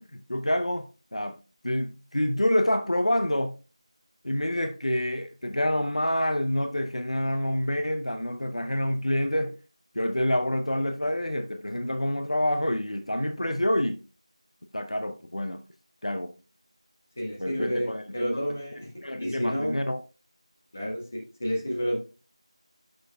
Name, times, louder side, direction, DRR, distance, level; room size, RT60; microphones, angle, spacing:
voice 1, 0.0-1.4 1.6-3.5 4.2-9.6 9.9-14.0 14.7-15.6 16.0-16.4 17.4-18.4 19.0-20.0, left 1 dB, 70° left, 0.8 m, -27 dB
voice 2, 17.2-17.9 18.1-18.9 19.2-19.8 20.7-22.0, equal, 20° left, 1.4 m, -30 dB
11.0 x 6.3 x 2.3 m
figure-of-eight pair, 180°, 3 cm